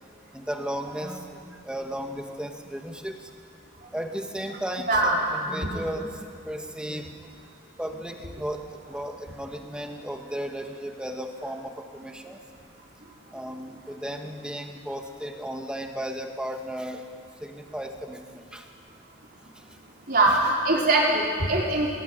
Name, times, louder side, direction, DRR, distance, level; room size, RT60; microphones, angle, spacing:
voice 1, 0.3-3.2 3.9-7.1 7.8-12.4 13.3-17.0 17.4-18.6 20.3-20.4, equal, 5° right, 3 dB, 1.9 m, -35 dB
voice 2, 20.1-21.9, right 2 dB, 50° right, -3 dB, 4.6 m, -22 dB
24.5 x 19.5 x 9.6 m, 2.2 s
head